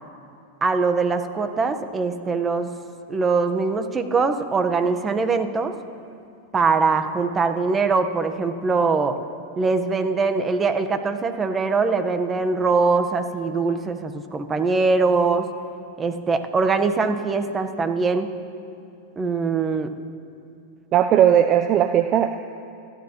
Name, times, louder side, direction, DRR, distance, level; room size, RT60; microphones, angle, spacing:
voice 1, 0.6-2.7 3.1-5.7 6.5-9.2 9.6-15.5 16.0-18.3 19.2-19.9, right 4 dB, 20° right, 7 dB, 1.2 m, -22 dB
voice 2, 20.9-22.3, right 10 dB, 40° right, 8 dB, 0.6 m, -17 dB
29.5 x 13.0 x 3.1 m, 2.7 s
hypercardioid pair, 95°, 0 cm